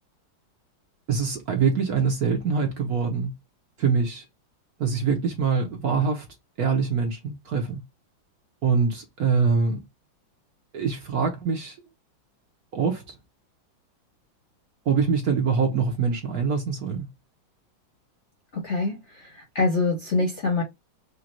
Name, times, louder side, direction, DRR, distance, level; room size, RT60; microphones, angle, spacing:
voice 1, 1.1-3.3 3.8-4.2 4.8-6.2 6.6-7.8 8.6-9.8 10.7-11.8 12.7-13.1 14.9-17.1, right 5 dB, 55° right, 1.2 m, -24 dB
voice 2, 18.5-19.0 19.5-20.6, left 3 dB, 45° left, 0.9 m, -24 dB
5.1 x 2.3 x 2.9 m
omnidirectional pair, 2.3 m